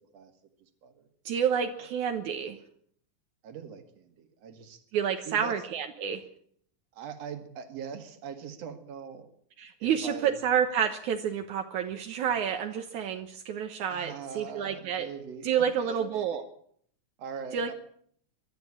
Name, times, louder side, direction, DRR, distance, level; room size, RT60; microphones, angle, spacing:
voice 1, 1.3-2.6 4.9-6.2 9.6-15.1 15.4-16.4 17.5-17.7, right 8 dB, 75° right, 5 dB, 2.6 m, -29 dB
voice 2, 3.4-4.8 5.3-5.6 6.9-9.3 9.8-10.4 13.9-16.4 17.2-17.7, right 7 dB, 55° right, 7 dB, 2.9 m, -42 dB
24.0 x 13.0 x 8.7 m, 0.63 s
omnidirectional pair, 3.6 m